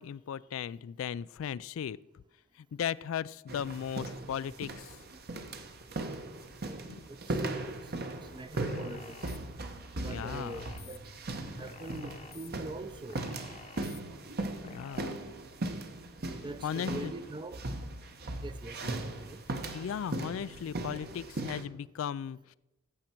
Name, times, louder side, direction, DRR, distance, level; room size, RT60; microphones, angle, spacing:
voice 1, 0.0-2.0 2.6-5.0 6.9-7.0 10.0-10.7 14.6-15.2 16.6-17.1 18.8-18.9 19.7-22.5, left 8 dB, 85° left, 19 dB, 0.3 m, -37 dB
sound 1, 3.5-21.6, right 2 dB, 50° right, 1.0 m, -38 dB
voice 2, 6.6-7.7 8.1-9.3 10.0-11.0 11.5-13.2 16.3-17.6 18.4-19.4, right 2 dB, 25° right, 12 dB, 0.5 m, -44 dB
sound 2, 8.5-9.4 10.0-11.0 11.6-12.5 13.1-14.0 14.6-15.0, left 5 dB, 35° left, 0.8 m, -50 dB
14.5 x 7.3 x 4.5 m, 0.96 s
head